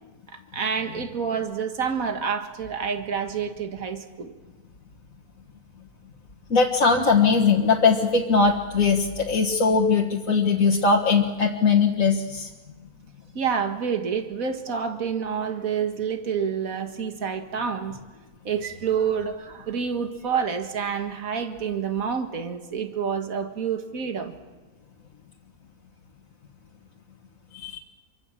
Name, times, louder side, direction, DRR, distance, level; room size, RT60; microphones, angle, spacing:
voice 1, 0.3-4.3 13.4-18.0 18.4-24.3, right 6 dB, 60° right, 6 dB, 2.2 m, -28 dB
voice 2, 6.5-12.5 27.5-27.8, left 4 dB, 60° left, -1 dB, 2.0 m, -20 dB
26.5 x 24.0 x 7.5 m, 1.3 s
omnidirectional pair, 1.6 m